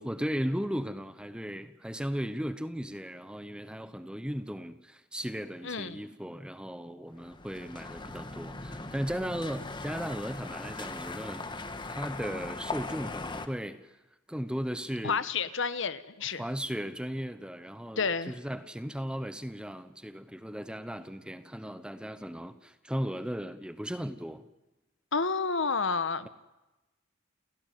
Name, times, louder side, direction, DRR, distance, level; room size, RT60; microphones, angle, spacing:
voice 1, 0.0-11.5 11.9-14.0 14.3-15.2 16.4-24.5, equal, 5° right, 1.0 m, -36 dB
voice 2, 5.6-6.0 15.0-16.4 18.0-18.3 25.1-26.3, left 5 dB, 60° left, 1.2 m, -30 dB
sound 1, 7.2-13.5, left 3 dB, 20° left, 1.5 m, -39 dB
30.0 x 16.5 x 9.3 m
head